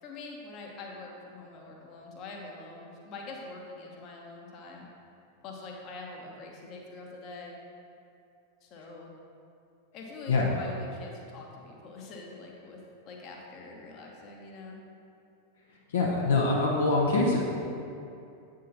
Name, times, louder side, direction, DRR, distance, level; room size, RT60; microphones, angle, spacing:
voice 1, 0.0-4.9 5.4-7.5 8.6-9.1 9.9-14.8, left 3 dB, 40° left, -1 dB, 1.1 m, -44 dB
voice 2, 10.3-10.6 15.9-17.4, left 3 dB, 65° left, -3 dB, 0.8 m, -24 dB
8.3 x 6.2 x 2.9 m, 2.6 s
figure-of-eight pair, 90°, 0 cm